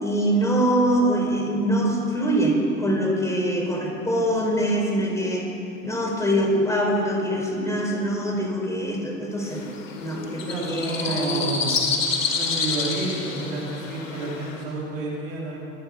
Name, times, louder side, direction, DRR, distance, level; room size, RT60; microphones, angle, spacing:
voice 1, 0.0-5.5 5.8-9.7 10.0-11.6, right 1 dB, 10° left, -1 dB, 4.3 m, -24 dB
sound 1, 9.5-14.6, left 5 dB, 85° left, 1.4 m, -28 dB
voice 2, 10.5-11.8 12.3-15.6, right 2 dB, 85° right, -4 dB, 2.8 m, -30 dB
23.0 x 8.7 x 5.3 m, 2.7 s
hypercardioid pair, 60°, 38 cm